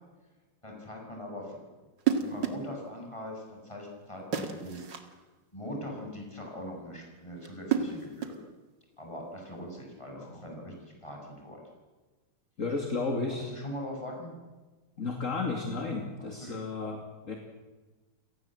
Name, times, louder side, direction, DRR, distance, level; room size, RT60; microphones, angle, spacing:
voice 1, 0.6-1.6 2.2-4.8 5.5-8.3 9.0-11.6 13.3-14.3 16.2-16.6, left 1 dB, 15° left, 0 dB, 7.1 m, -41 dB
sound 1, 2.0-2.7 4.3-5.1 7.4-8.5, right 8 dB, 85° right, 2.6 m, -31 dB
voice 2, 12.6-13.5 15.0-17.4, left 3 dB, 45° left, 3 dB, 2.7 m, -33 dB
29.5 x 18.0 x 7.8 m, 1.2 s
omnidirectional pair, 1.9 m